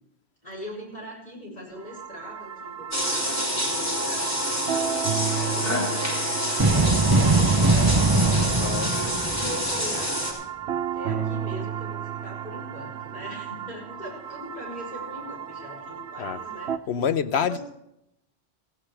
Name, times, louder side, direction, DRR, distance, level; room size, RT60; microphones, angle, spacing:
voice 1, 0.4-5.0 5.3-8.6 9.4-10.1 10.9-16.7 17.4-17.6, left 1 dB, 45° left, -2 dB, 7.5 m, -40 dB
sound 1, 1.8-16.8, right 8 dB, 80° right, 1.0 m, -34 dB
sound 2, 2.9-10.3, equal, 15° left, 4.0 m, -27 dB
sound 3, 6.6-10.0, right 3 dB, 25° right, 0.7 m, -21 dB
voice 2, 8.5-9.2 16.2-16.4 16.9-17.6, left 7 dB, 85° left, 11 dB, 1.1 m, -27 dB
17.5 x 15.5 x 3.4 m, 0.80 s
omnidirectional pair, 1.1 m